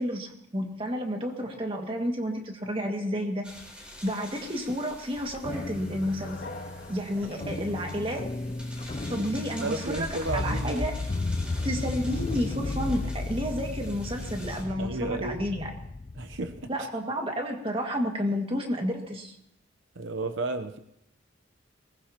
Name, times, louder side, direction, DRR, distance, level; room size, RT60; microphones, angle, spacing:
voice 1, 0.0-3.5 4.0-6.4 6.9-8.3 9.1-11.0 11.6-15.7 16.7-19.4, equal, 30° right, 2 dB, 2.0 m, -31 dB
sound 1, 3.4-14.6, equal, 5° right, 4.1 m, -46 dB
sound 2, 5.4-16.6, left 2 dB, 30° left, 0.5 m, -34 dB
sound 3, 5.6-8.7, left 2 dB, 65° left, 2.3 m, -46 dB
voice 2, 9.6-10.9 14.8-15.4 16.2-16.9 19.9-20.8, right 2 dB, 70° right, 9 dB, 0.8 m, -33 dB
22.5 x 20.5 x 2.9 m, 0.77 s
head